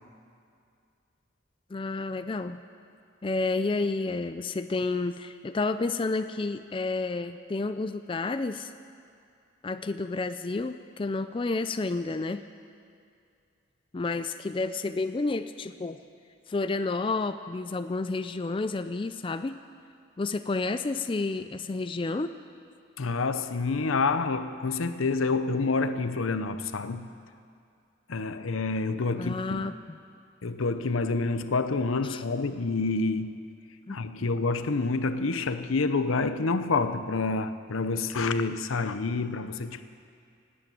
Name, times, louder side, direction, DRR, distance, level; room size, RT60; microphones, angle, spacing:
voice 1, 1.7-2.6 3.2-8.7 9.6-12.4 13.9-16.0 16.5-19.6 20.2-22.4 29.2-30.0 32.0-32.2 33.9-34.3, left 3 dB, 25° left, 0.4 m, -30 dB
voice 2, 23.0-27.1 28.1-29.6 30.4-33.4 33.9-39.8, left 3 dB, 85° left, 0.7 m, -28 dB
17.5 x 8.8 x 9.1 m
head